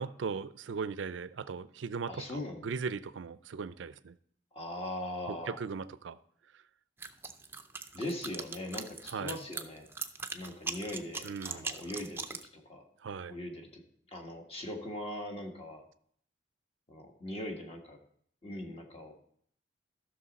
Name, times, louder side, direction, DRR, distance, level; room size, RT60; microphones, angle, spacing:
voice 1, 0.0-4.2 5.3-6.2 9.1-9.4 11.2-11.7 13.0-13.3, right 5 dB, 75° right, 0.4 m, -38 dB
voice 2, 2.1-2.6 4.5-5.6 7.9-9.9 10.3-12.8 13.3-13.8 14.1-15.8 16.9-18.0 18.4-19.2, left 1 dB, 30° left, 1.5 m, -40 dB
sound 1, 7.0-12.5, right 4 dB, 15° right, 0.5 m, -40 dB
13.5 x 6.3 x 4.1 m
head